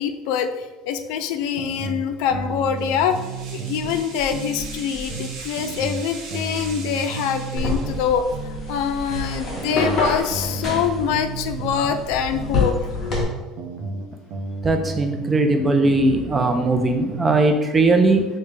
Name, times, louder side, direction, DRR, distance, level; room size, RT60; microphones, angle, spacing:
voice 1, 0.0-3.2 3.5-12.8, left 7 dB, 80° left, 0.4 m, -24 dB
sound 1, 1.6-4.0 4.3-8.0 8.3-12.0 12.3-16.0 16.3-17.4, right 4 dB, 55° right, 0.7 m, -33 dB
sound 2, 2.7-8.3, right 2 dB, 85° right, 1.5 m, -38 dB
sound 3, 7.6-13.2, left 3 dB, 30° left, 1.3 m, -27 dB
voice 2, 14.6-18.2, right 2 dB, 15° right, 0.4 m, -19 dB
6.4 x 2.2 x 3.3 m
cardioid pair, 150°, 0 cm